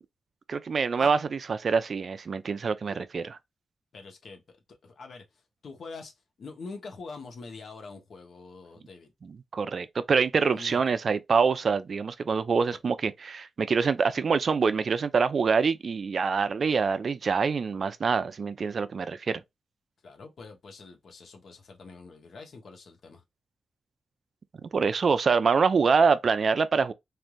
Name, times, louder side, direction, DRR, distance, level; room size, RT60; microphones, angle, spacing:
voice 1, 0.5-3.4 9.2-19.4 24.7-26.9, right 5 dB, 60° right, 0.4 m, -25 dB
voice 2, 3.9-4.6 4.8-5.2 5.6-6.1 6.4-9.1 10.5-10.8 12.7-12.8 20.0-23.2, left 4 dB, 65° left, 1.0 m, -44 dB
3.2 x 2.6 x 2.3 m
cardioid pair, 60°, 0 cm